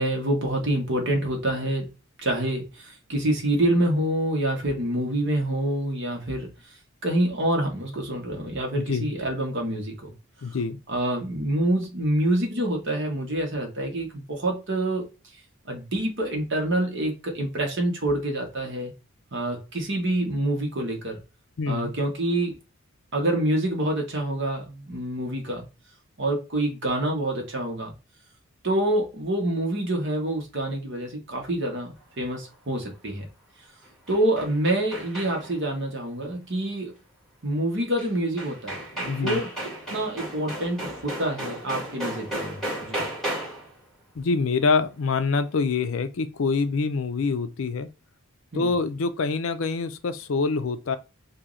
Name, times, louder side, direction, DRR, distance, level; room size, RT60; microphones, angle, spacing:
voice 1, 0.0-1.9 2.2-6.5 7.0-10.1 10.9-15.0 15.6-18.9 19.3-21.2 21.7-22.5 23.1-25.6 26.2-27.9 28.6-33.2 34.1-36.9 37.4-39.5 39.9-43.1 48.5-48.7, right 1 dB, 55° right, 1.2 m, -26 dB
voice 2, 8.8-9.1 10.4-10.8 21.6-21.9 39.1-39.4 44.2-47.9 48.5-51.0, left 4 dB, 65° left, 0.5 m, -25 dB
sound 1, 33.8-35.6 38.0-38.1 38.4-43.7, right 1 dB, ahead, 2.0 m, -34 dB
3.0 x 2.7 x 3.7 m
head